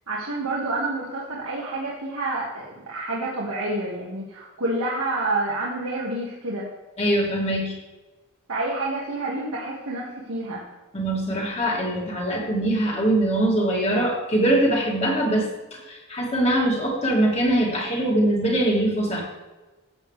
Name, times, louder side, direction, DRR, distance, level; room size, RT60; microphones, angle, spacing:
voice 1, 0.1-6.7 8.5-10.6, right 2 dB, 90° right, -4 dB, 1.7 m, -28 dB
voice 2, 7.0-7.8 10.9-15.5 15.7-19.2, right 1 dB, 30° left, -2 dB, 2.5 m, -22 dB
13.0 x 8.8 x 3.3 m, 1.2 s
head